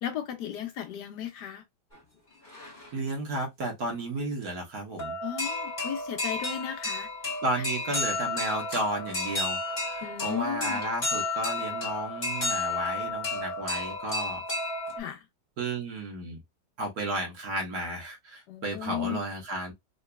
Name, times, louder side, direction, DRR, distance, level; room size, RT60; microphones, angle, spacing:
voice 1, 0.0-1.6 5.2-7.1 10.0-10.8 15.0-15.2 18.5-19.2, left 10 dB, 70° left, 1.3 m, -35 dB
sound 1, 1.9-2.0 2.4-3.1 4.4-4.5 5.0-15.0, left 2 dB, 25° left, 2.1 m, -32 dB
voice 2, 2.9-5.2 6.6-6.7 7.4-14.4 15.6-16.4 16.8-19.7, right 1 dB, 55° right, 1.7 m, -33 dB
3.9 x 3.0 x 2.3 m
omnidirectional pair, 2.0 m